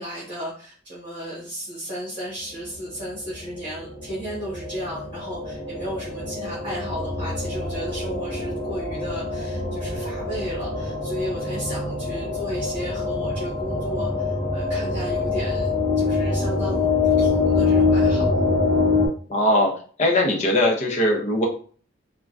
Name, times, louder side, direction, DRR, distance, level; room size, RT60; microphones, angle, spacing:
voice 1, 0.0-15.7 16.0-18.2, equal, 25° right, -7 dB, 1.2 m, -34 dB
sound 1, 2.9-19.1, left 3 dB, ahead, 1.2 m, -25 dB
voice 2, 19.3-19.7 20.0-21.4, left 1 dB, 35° left, 0 dB, 0.7 m, -20 dB
3.6 x 2.2 x 2.5 m, 0.43 s
head